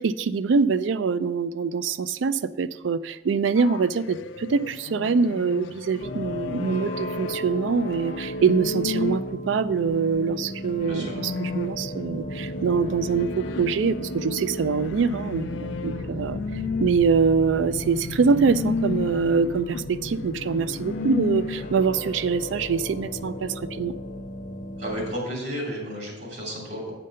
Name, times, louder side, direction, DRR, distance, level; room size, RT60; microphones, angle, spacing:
voice 1, 0.0-23.9, right 5 dB, 90° right, 14 dB, 0.4 m, -24 dB
sound 1, 3.6-9.3 9.9-12.0 12.5-21.8, left 5 dB, 80° left, 0.3 m, -34 dB
sound 2, 6.0-25.2, equal, 40° left, 0.6 m, -35 dB
voice 2, 10.8-11.1 24.8-26.9, equal, 65° right, -3 dB, 3.0 m, -32 dB
8.4 x 5.1 x 5.6 m, 1.1 s
head